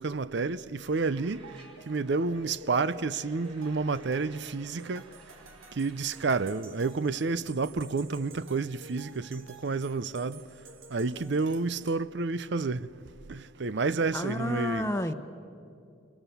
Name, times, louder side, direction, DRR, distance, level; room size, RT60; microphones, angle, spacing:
voice 1, 0.0-1.4 1.9-5.0 5.8-10.4 10.9-12.9 13.3-14.9, right 4 dB, 60° right, 0.5 m, -30 dB
sound 1, 0.9-6.5, right 4 dB, 25° right, 3.9 m, -56 dB
sound 2, 1.3-11.9, right 2 dB, 90° right, 3.0 m, -51 dB
voice 2, 14.1-15.1, left 1 dB, 15° left, 1.0 m, -30 dB
29.0 x 25.0 x 7.0 m
head